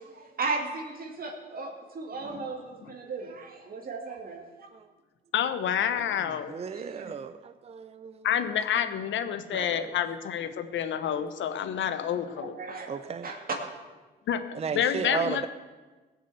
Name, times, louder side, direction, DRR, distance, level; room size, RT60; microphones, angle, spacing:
voice 1, 0.1-4.4 6.7-7.1 12.6-12.9 13.2-13.4, right 3 dB, 45° right, 1 dB, 2.2 m, -36 dB
voice 2, 5.3-6.5 8.2-12.6 14.3-15.5, left 9 dB, 70° left, 11 dB, 1.1 m, -29 dB
voice 3, 6.5-8.3 9.5-9.9 12.9-13.3 14.5-15.5, right 6 dB, 30° right, 10 dB, 0.5 m, -34 dB
16.5 x 6.7 x 8.0 m, 1.3 s
cardioid pair, 90°, 20 cm